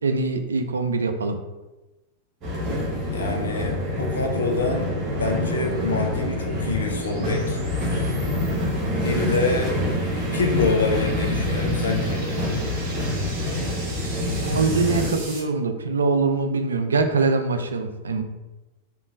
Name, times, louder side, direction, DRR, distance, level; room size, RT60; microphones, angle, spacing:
voice 1, 0.0-1.4 14.4-18.2, right 4 dB, 70° right, 7 dB, 0.3 m, -23 dB
sound 1, 2.4-15.1, left 1 dB, 35° right, 1.2 m, -26 dB
voice 2, 3.1-4.9 5.2-7.6 9.0-9.7 10.3-12.2, left 3 dB, 70° left, 2 dB, 0.5 m, -26 dB
sound 2, 4.2-15.4, right 2 dB, 55° right, 1.3 m, -41 dB
3.6 x 2.9 x 2.5 m, 1.1 s
figure-of-eight pair, 90°, 0 cm